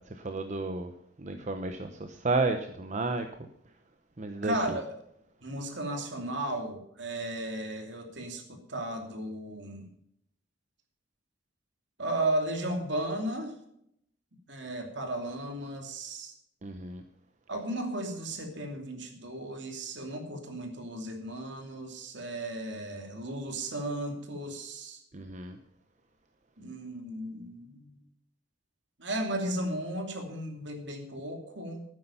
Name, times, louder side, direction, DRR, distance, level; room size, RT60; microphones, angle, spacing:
voice 1, 0.1-0.9 1.2-3.3 4.2-4.5 16.6-17.0 25.1-25.6, right 3 dB, 40° right, 7 dB, 0.8 m, -32 dB
voice 2, 4.4-4.9 5.4-9.9 12.0-13.6 14.5-16.3 17.5-25.0 26.6-28.0 29.0-31.8, right 1 dB, 65° right, 4 dB, 2.7 m, -35 dB
12.5 x 9.7 x 5.6 m, 0.74 s
head